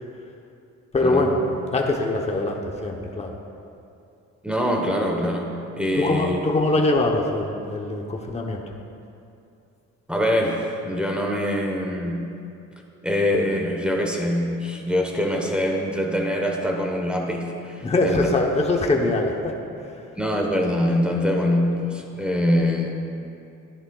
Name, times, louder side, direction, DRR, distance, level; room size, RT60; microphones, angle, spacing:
voice 1, 0.9-1.4 1.7-3.3 5.9-8.6 17.8-19.5, left 2 dB, 20° left, 1 dB, 0.9 m, -23 dB
voice 2, 4.4-6.4 10.1-12.2 13.0-18.3 20.2-22.9, left 1 dB, 5° right, -1 dB, 1.1 m, -24 dB
11.0 x 10.5 x 2.4 m, 2.6 s
cardioid pair, 90°, 30 cm